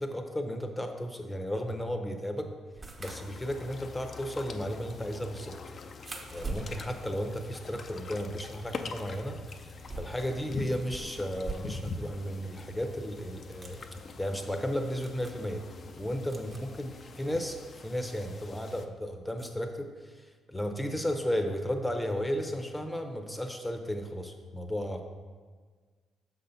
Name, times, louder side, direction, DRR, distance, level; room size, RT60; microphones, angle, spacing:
voice 1, 0.0-2.5 3.0-5.5 6.3-13.8 14.2-15.6 16.0-16.9 17.2-25.0, equal, 10° left, 5 dB, 0.7 m, -34 dB
sound 1, 2.7-8.2 8.5-12.1 12.4-12.5 13.3-13.9 14.6-14.7 14.9-15.5 16.3-16.8 18.1-18.2 19.4-19.5, right 3 dB, 25° right, 0.9 m, -44 dB
sound 2, 3.0-18.9, left 4 dB, 45° left, 0.5 m, -44 dB
6.3 x 4.1 x 5.6 m, 1.5 s
cardioid pair, 90°, 0 cm